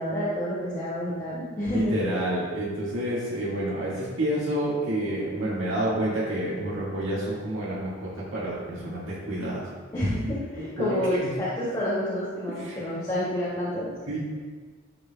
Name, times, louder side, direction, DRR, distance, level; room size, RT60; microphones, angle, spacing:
voice 1, 0.0-2.0 9.9-13.9, equal, 20° left, -11 dB, 2.2 m, -29 dB
voice 2, 1.7-9.6 10.8-11.2 12.6-12.8 14.1-14.2, right 1 dB, 65° right, -7 dB, 1.9 m, -29 dB
12.0 x 6.8 x 2.3 m, 1.5 s
head